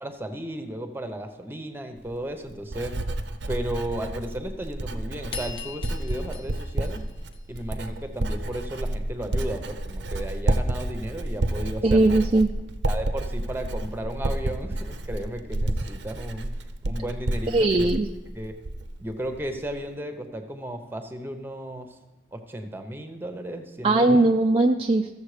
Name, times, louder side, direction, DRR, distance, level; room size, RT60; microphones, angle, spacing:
voice 1, 0.0-3.0 3.5-7.0 7.5-12.2 12.9-16.5 16.8-17.9 18.4-18.5 19.0-22.0 22.3-24.3, right 1 dB, 10° right, 7 dB, 0.8 m, -34 dB
Writing, 2.0-19.0 19.3-19.8, right 1 dB, 85° right, 0.7 m, -30 dB
sound 1, 5.3-7.9, left 5 dB, 30° left, 0.7 m, -40 dB
voice 2, 11.8-12.5 17.5-18.1 23.8-25.1, right 2 dB, 30° right, 4 dB, 0.4 m, -19 dB
14.0 x 7.2 x 4.9 m, 1.1 s
head